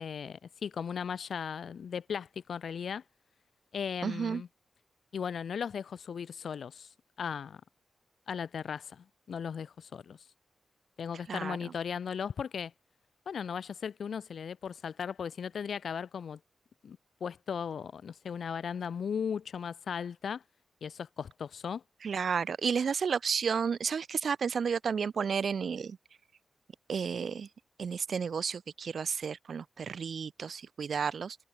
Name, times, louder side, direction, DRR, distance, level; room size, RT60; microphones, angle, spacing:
voice 1, 0.0-3.0 3.7-4.5 5.1-6.9 7.2-7.6 8.3-10.2 11.0-12.7 13.3-16.4 16.8-20.4 20.8-21.8, left 7 dB, 90° left, 1.1 m, -37 dB
voice 2, 4.0-4.4 11.3-11.6 22.0-26.0 26.9-27.5 27.8-31.4, right 6 dB, 75° right, 0.5 m, -32 dB
wide cardioid pair, 105°, 0 cm